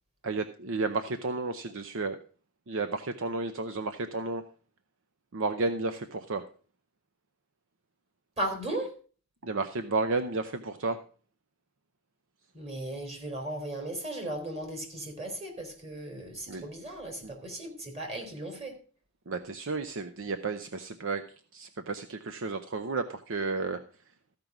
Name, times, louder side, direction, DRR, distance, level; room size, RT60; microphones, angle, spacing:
voice 1, 0.2-2.2 2.7-4.4 5.3-6.5 9.4-11.0 16.5-16.7 17.2-17.3 19.3-21.2 21.5-23.8, right 3 dB, 65° right, 9 dB, 0.7 m, -32 dB
voice 2, 8.4-8.9 12.5-18.8, right 1 dB, 30° right, 2 dB, 3.4 m, -36 dB
14.5 x 5.3 x 5.9 m, 0.40 s
head